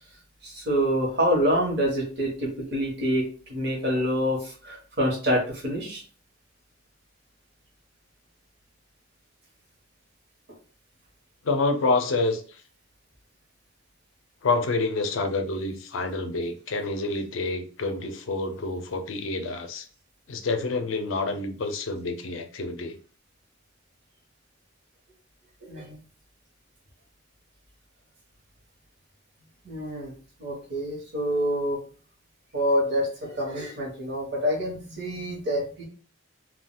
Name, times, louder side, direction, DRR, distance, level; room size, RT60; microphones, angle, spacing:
voice 1, 0.4-6.0 25.6-26.0 29.6-30.1 30.4-31.8 32.5-35.8, equal, 60° right, -2 dB, 1.1 m, -27 dB
voice 2, 11.4-12.6 14.4-19.9 20.3-23.0, left 3 dB, 80° left, 7 dB, 0.5 m, -28 dB
3.6 x 2.3 x 2.2 m, 0.40 s
head